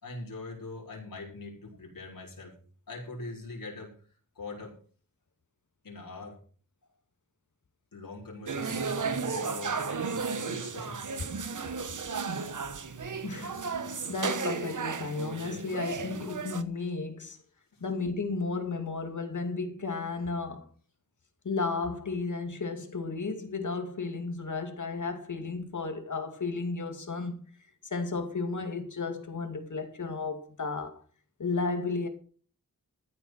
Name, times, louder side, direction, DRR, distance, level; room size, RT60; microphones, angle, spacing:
voice 1, 0.0-2.6 2.9-3.9 4.3-4.8 5.8-6.4 7.9-11.1, left 3 dB, 80° left, 4.7 m, -42 dB
sound 1, 8.5-16.6, right 5 dB, 65° right, 1.2 m, -34 dB
voice 2, 13.2-13.7 14.1-17.4 17.8-20.7 21.4-27.4 27.8-31.0 31.4-32.1, left 4 dB, 60° left, 2.5 m, -33 dB
14.0 x 8.1 x 5.9 m
wide cardioid pair, 105°, 34 cm